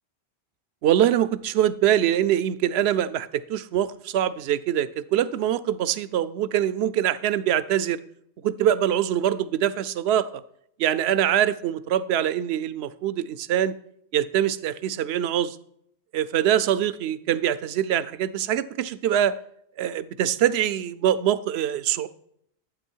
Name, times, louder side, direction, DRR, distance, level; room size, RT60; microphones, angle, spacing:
voice 1, 0.8-8.0 8.4-10.4 10.8-13.7 14.1-15.6 16.1-19.4 19.8-22.1, right 10 dB, 75° right, 16 dB, 0.8 m, -24 dB
11.5 x 8.7 x 4.5 m, 0.71 s
omnidirectional pair, 1.1 m